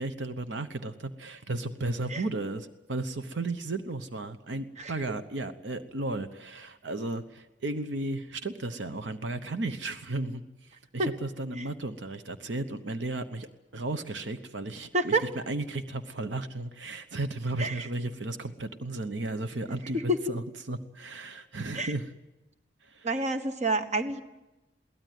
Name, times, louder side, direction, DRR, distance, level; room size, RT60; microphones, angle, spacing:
voice 1, 0.0-13.5 13.7-20.4 20.7-22.1 22.8-23.1, right 2 dB, 75° right, 10 dB, 1.0 m, -34 dB
voice 2, 23.0-24.2, right 2 dB, 40° right, 8 dB, 1.3 m, -28 dB
22.5 x 17.0 x 9.3 m, 1.0 s
head